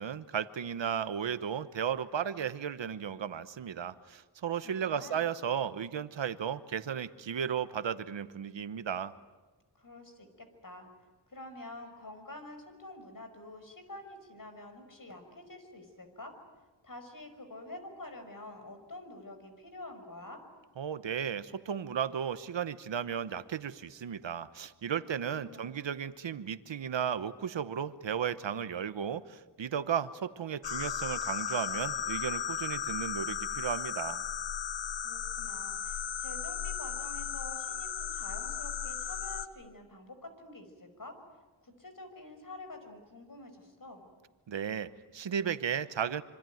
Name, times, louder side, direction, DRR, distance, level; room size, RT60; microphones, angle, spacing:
voice 1, 0.0-9.1 20.8-34.2 44.5-46.2, right 8 dB, 85° right, 13 dB, 1.0 m, -34 dB
voice 2, 4.6-5.2 9.8-10.9 11.3-16.3 16.8-20.4 24.9-25.1 25.4-25.7 35.0-41.2 41.6-44.1, left 2 dB, 50° left, 7 dB, 5.5 m, -48 dB
sound 1, 30.6-39.5, left 8 dB, 75° left, 1.0 m, -36 dB
26.0 x 24.5 x 9.3 m, 1.2 s
cardioid pair, 55°, 44 cm